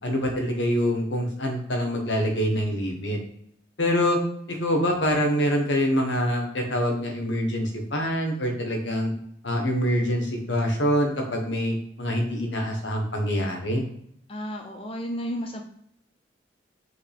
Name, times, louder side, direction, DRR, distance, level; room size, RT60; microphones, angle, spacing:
voice 1, 0.0-3.2 3.8-4.2 4.5-9.1 9.4-13.8, equal, 80° left, 2 dB, 1.5 m, -25 dB
voice 2, 14.3-15.6, equal, 30° left, 3 dB, 0.6 m, -32 dB
8.0 x 3.9 x 3.5 m, 0.71 s
head